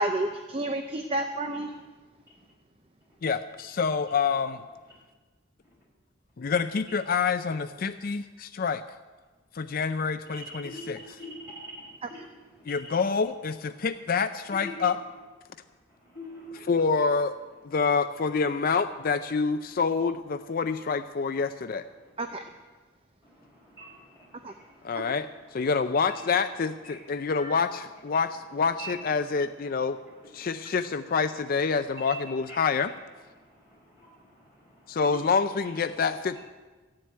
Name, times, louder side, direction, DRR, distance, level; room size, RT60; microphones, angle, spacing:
voice 1, 0.0-1.7 12.0-12.1 22.2-22.4 24.4-24.5, right 1 dB, 30° right, 6 dB, 0.6 m, -30 dB
voice 2, 3.2-4.6 6.4-8.8 9.5-11.0 12.6-15.0 16.5-17.4 17.6-21.9 24.8-30.0 30.3-32.9 34.9-36.4, left 5 dB, 45° left, 10 dB, 0.4 m, -27 dB
voice 3, 10.3-12.2 12.7-12.8 14.6-14.8 16.0-16.7 23.2-25.1 26.1-26.2 26.9-27.0 27.4-27.6 28.8-28.9 32.1-32.2 33.5-35.1, right 1 dB, 10° right, -6 dB, 6.2 m, -44 dB
14.5 x 7.7 x 9.3 m, 1.3 s
head